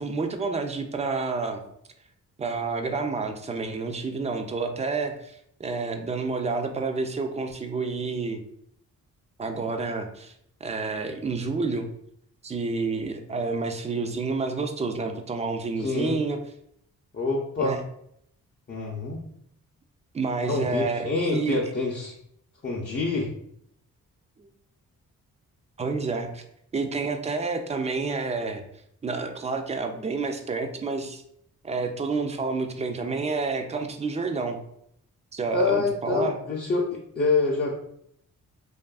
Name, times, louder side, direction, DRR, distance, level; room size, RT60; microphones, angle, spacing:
voice 1, 0.0-1.6 2.4-8.4 9.4-10.3 10.6-11.9 12.4-16.4 17.6-17.8 20.1-21.7 24.4-24.5 25.8-26.4 26.7-28.6 29.0-31.2 31.6-34.6 35.3-36.4, right 4 dB, 20° right, 6 dB, 0.3 m, -29 dB
voice 2, 15.8-16.2 17.1-17.8 18.7-19.2 20.4-22.1 22.6-23.3 35.5-37.7, left 3 dB, 35° left, -4 dB, 0.5 m, -26 dB
2.6 x 2.4 x 2.3 m, 0.71 s
cardioid pair, 60°, 33 cm